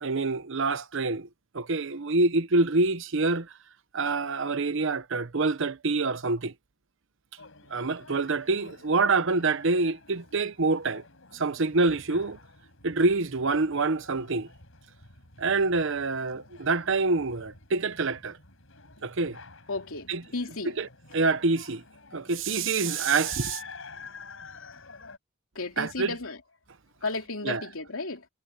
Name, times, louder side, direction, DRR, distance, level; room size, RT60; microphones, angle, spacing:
voice 1, 0.0-1.3 1.5-3.5 3.9-6.5 7.7-11.0 11.3-12.4 12.8-14.5 15.4-18.4 19.0-19.4 20.1-20.2 20.8-20.9 21.1-21.8 22.1-23.6 25.8-26.1 27.4-27.6, right 3 dB, 65° right, 0.9 m, -26 dB
sound 1, 7.4-25.2, left 4 dB, 65° left, 7.9 m, -49 dB
voice 2, 19.7-20.8 25.5-26.4 27.0-28.3, left 3 dB, 85° left, 2.9 m, -34 dB
head